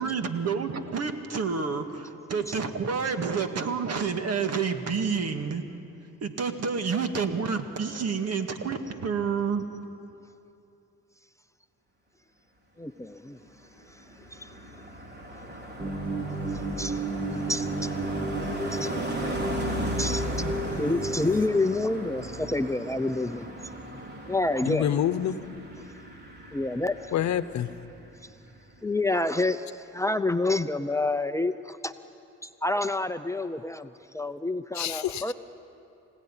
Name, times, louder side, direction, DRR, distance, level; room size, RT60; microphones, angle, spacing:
voice 1, 0.0-5.7 6.0-9.7, right 5 dB, 55° right, 7 dB, 2.0 m, -29 dB
voice 2, 12.8-13.4 14.3-14.6 15.8-15.9 16.4-17.1 17.5-17.9 18.7-18.9 20.0-23.5 24.3-24.9 26.5-27.0 28.8-31.9 32.4-35.3, left 2 dB, 10° left, 8 dB, 0.7 m, -28 dB
Car passing by, 13.4-28.2 28.5-28.8, equal, 35° right, 3.8 m, -36 dB
sound 1, 15.8-21.5, right 2 dB, 15° right, 1.9 m, -32 dB
voice 3, 24.6-25.4 27.1-27.7 34.7-35.3, left 10 dB, 65° left, 13 dB, 1.0 m, -27 dB
25.0 x 17.5 x 10.0 m, 2.7 s
cardioid pair, 90°, 30 cm